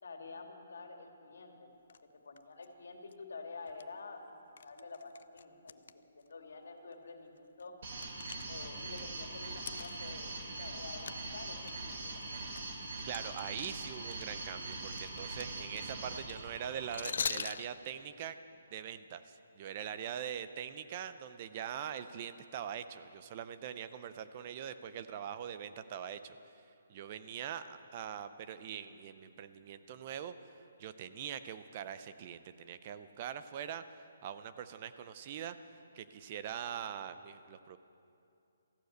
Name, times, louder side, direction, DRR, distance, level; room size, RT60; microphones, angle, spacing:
voice 1, 0.0-1.7 2.2-4.2 4.6-7.8 8.5-12.6, left 4 dB, 80° left, 3 dB, 2.2 m, -49 dB
sound 1, 1.9-2.0 2.4-2.6 3.1-3.2 3.7-3.8 4.6-5.9 6.2-6.3 6.9-7.0 7.4-9.0 9.6-10.8 11.1-11.2 11.6-14.2 14.5-17.7, left 6 dB, 55° left, 0.4 m, -41 dB
sound 2, 7.8-17.2, right 2 dB, 40° right, 1.9 m, -42 dB
voice 2, 13.1-18.4 18.7-26.4 26.9-30.3 30.8-33.8 34.2-35.6 35.9-37.8, right 9 dB, 25° right, 12 dB, 0.5 m, -42 dB
14.5 x 11.5 x 8.0 m, 2.6 s
hypercardioid pair, 175°, 0 cm